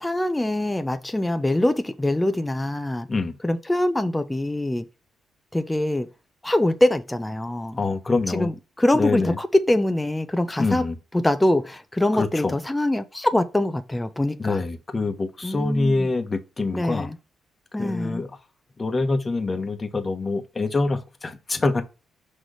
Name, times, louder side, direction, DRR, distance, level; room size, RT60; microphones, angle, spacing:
voice 1, 0.0-3.1 3.4-4.8 5.5-6.1 6.4-7.8 8.3-10.8 11.1-14.6 15.4-16.1 16.7-17.2 17.7-18.2, left 1 dB, 10° left, 0.6 m, -23 dB
voice 2, 7.8-8.5 8.9-9.4 10.6-11.0 12.1-12.5 14.4-17.1 17.8-18.4 18.8-21.8, left 3 dB, 25° left, 1.2 m, -25 dB
6.0 x 3.2 x 5.1 m
cardioid pair, 110°, 0 cm